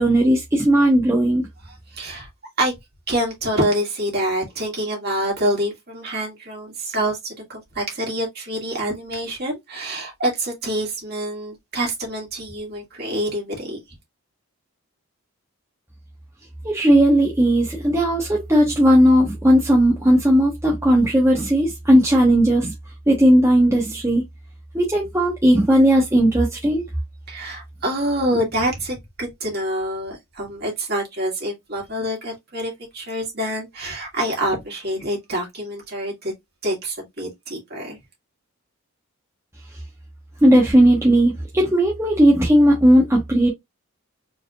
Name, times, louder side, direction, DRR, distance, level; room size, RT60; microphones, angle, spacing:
voice 1, 0.0-1.4 16.6-22.7 23.1-24.2 24.7-26.8 40.4-43.5, equal, 10° right, 1.0 m, -16 dB
voice 2, 1.6-2.3 2.6-2.7 3.1-13.8 27.3-36.3 36.6-38.0, right 1 dB, 45° right, 2.3 m, -26 dB
4.5 x 3.6 x 2.4 m
head